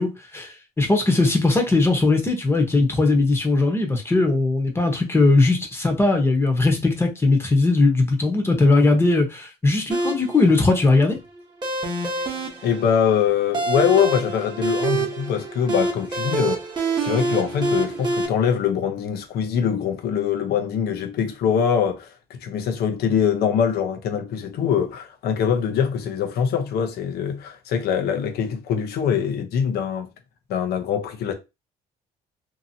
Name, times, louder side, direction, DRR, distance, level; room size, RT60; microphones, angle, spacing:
voice 1, 0.0-11.2, left 3 dB, 15° left, 0.9 m, -19 dB
sound 1, 9.9-18.3, right 2 dB, 25° right, 1.0 m, -26 dB
voice 2, 12.6-16.7 17.0-30.1 30.5-31.3, left 8 dB, 70° left, 0.8 m, -23 dB
2.8 x 2.6 x 2.7 m
cardioid pair, 110°, 17 cm